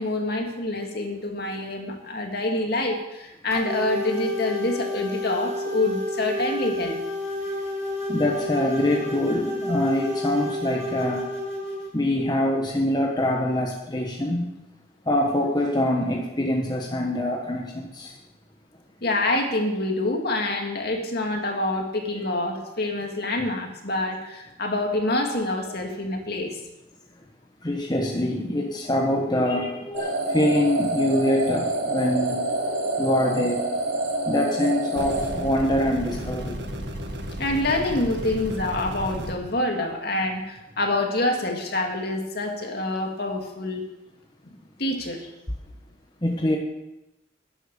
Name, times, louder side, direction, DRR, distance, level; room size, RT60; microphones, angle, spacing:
voice 1, 0.0-7.0 19.0-26.6 37.4-43.8 44.4-45.2, left 2 dB, 55° left, 2 dB, 2.3 m, -26 dB
sound 1, 3.5-11.9, left 1 dB, 15° right, 4.7 m, -31 dB
voice 2, 8.1-11.3 11.9-14.5 15.0-18.2 22.1-22.2 27.6-32.4 33.0-33.7 34.3-36.6 46.2-46.6, left 1 dB, 20° left, 1 dB, 1.2 m, -24 dB
sound 2, 29.9-36.1, right 2 dB, 80° right, 3.4 m, -27 dB
sound 3, 35.0-39.4, equal, 65° right, 1.8 m, -33 dB
11.5 x 10.5 x 6.9 m, 0.96 s
head